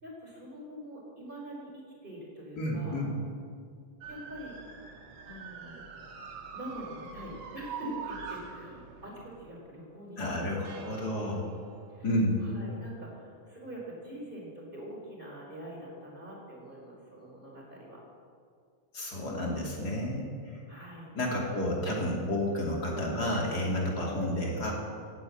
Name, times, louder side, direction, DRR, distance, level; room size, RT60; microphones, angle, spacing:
voice 1, 0.0-3.0 4.1-4.5 5.2-5.8 6.5-10.9 11.9-12.1 12.4-18.0 20.7-21.1, equal, 15° right, -3 dB, 4.0 m, -44 dB
voice 2, 2.6-3.1 10.2-11.4 12.0-12.4 18.9-20.3 21.2-24.8, left 1 dB, 30° left, -2 dB, 2.9 m, -30 dB
sound 1, 4.0-9.5 10.6-12.3, right 5 dB, 65° right, 3.0 m, -44 dB
17.5 x 8.8 x 8.4 m, 2.2 s
omnidirectional pair, 4.2 m